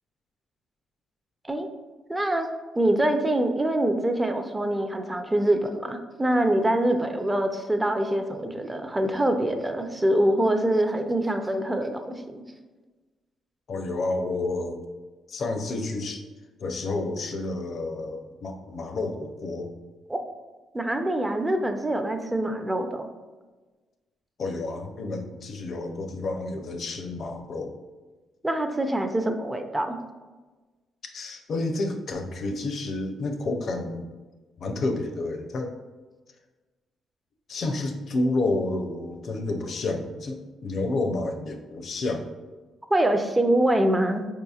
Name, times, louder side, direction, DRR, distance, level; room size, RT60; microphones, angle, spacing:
voice 1, 2.1-2.5 2.8-12.4 20.1-20.2 20.7-23.1 28.4-30.0 42.9-44.3, right 1 dB, 15° right, 6 dB, 0.4 m, -24 dB
voice 2, 13.7-14.8 15.3-16.2 16.6-19.7 24.4-27.8 31.1-34.1 34.6-35.7 37.5-42.3, left 2 dB, 55° left, 4 dB, 0.5 m, -30 dB
4.7 x 2.8 x 2.3 m, 1.3 s
cardioid pair, 90°, 0 cm